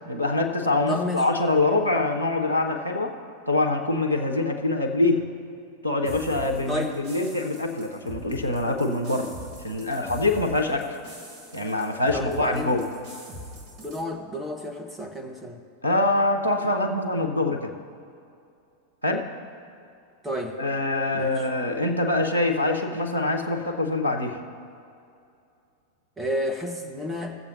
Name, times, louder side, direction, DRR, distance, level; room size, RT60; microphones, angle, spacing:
voice 1, 0.1-3.1 3.5-5.3 5.8-9.3 9.6-11.0 11.5-12.8 15.8-17.7 19.0-19.3 20.6-24.4, left 2 dB, 90° right, 1 dB, 0.7 m, -24 dB
voice 2, 0.9-1.3 6.7-6.9 12.1-12.8 13.8-15.6 20.2-20.6 21.1-21.4 26.2-27.4, equal, 10° right, 0 dB, 1.1 m, -31 dB
sound 1, 6.0-14.0, equal, 40° right, 1.6 m, -43 dB
18.0 x 7.3 x 2.7 m, 2.5 s
figure-of-eight pair, 90°, 0 cm